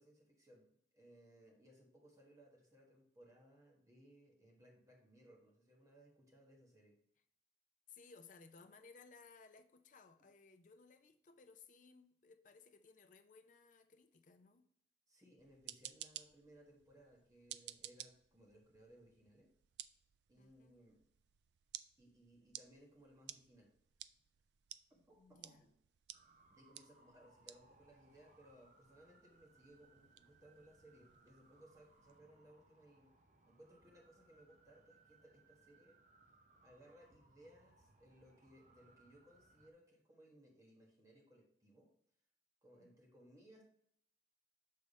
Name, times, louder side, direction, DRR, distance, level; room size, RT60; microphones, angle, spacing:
voice 1, 0.0-7.0 15.1-19.5 20.3-21.0 22.0-23.7 24.9-25.7 26.5-33.1 33.4-36.0 36.6-41.9 42.6-43.6, right 1 dB, 20° right, 1.3 m, -64 dB
voice 2, 7.9-14.7 20.4-20.8 25.2-25.7 42.8-43.1, left 4 dB, 45° left, 0.6 m, -62 dB
sound 1, 15.4-32.2, right 13 dB, 70° right, 0.3 m, -57 dB
sound 2, 26.1-39.7, right 3 dB, 40° right, 0.8 m, -69 dB
6.5 x 3.5 x 5.3 m
head